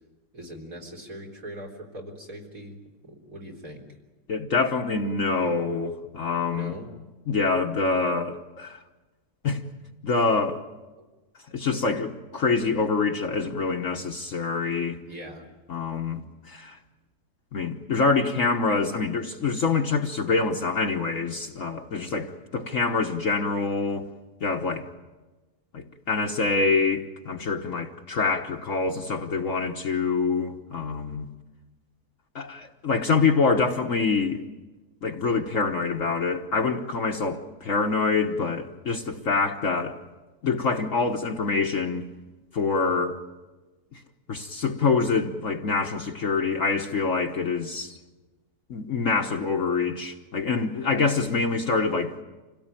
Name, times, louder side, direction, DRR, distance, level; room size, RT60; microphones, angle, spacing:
voice 1, 0.3-3.8 6.5-6.9 15.1-15.5, equal, 55° right, 4.2 m, -41 dB
voice 2, 4.3-6.7 7.3-8.8 9.4-9.6 10.0-10.6 11.5-15.0 15.7-16.8 17.5-24.1 24.4-24.9 25.7-31.3 32.3-34.4 35.0-40.0 40.4-42.0 42.5-43.2 43.9-44.0 44.3-48.0 48.7-52.2, left 4 dB, 55° left, 1.5 m, -25 dB
27.5 x 17.5 x 9.1 m
omnidirectional pair, 1.8 m